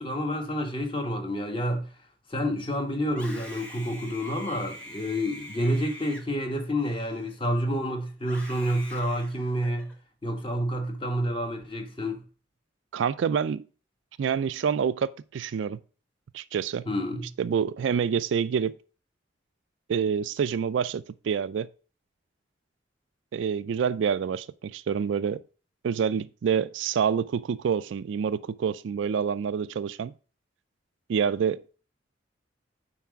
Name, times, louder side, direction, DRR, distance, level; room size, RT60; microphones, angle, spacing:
voice 1, 0.0-1.9 2.3-9.9 10.2-12.2 16.9-17.3, equal, 25° left, 1.2 m, -29 dB
Screaming, 3.1-7.6 8.2-9.9, equal, 5° left, 1.4 m, -45 dB
voice 2, 12.9-13.6 14.2-15.8 16.3-16.9 17.4-18.8 19.9-21.7 23.3-25.4 25.8-30.1 31.1-31.8, right 7 dB, 70° right, 0.3 m, -27 dB
5.8 x 4.7 x 6.2 m
head